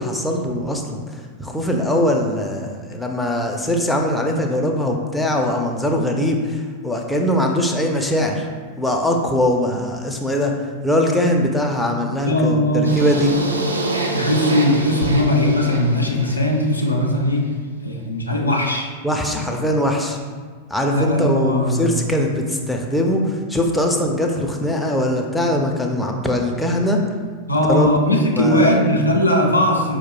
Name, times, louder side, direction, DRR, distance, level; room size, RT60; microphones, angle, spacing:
voice 1, 0.0-8.5 8.8-10.5 10.8-13.3 19.0-20.2 20.7-27.0 27.7-27.9 28.4-28.7, left 1 dB, 5° left, 1 dB, 0.4 m, -21 dB
voice 2, 12.2-12.9 14.1-17.5 17.8-18.9 20.9-22.0 27.5-30.0, left 1 dB, 85° left, 1 dB, 0.4 m, -19 dB
sound 1, 12.8-16.9, right 2 dB, 75° right, 0.3 m, -26 dB
4.5 x 2.1 x 3.0 m, 1.5 s
figure-of-eight pair, 90°, 0 cm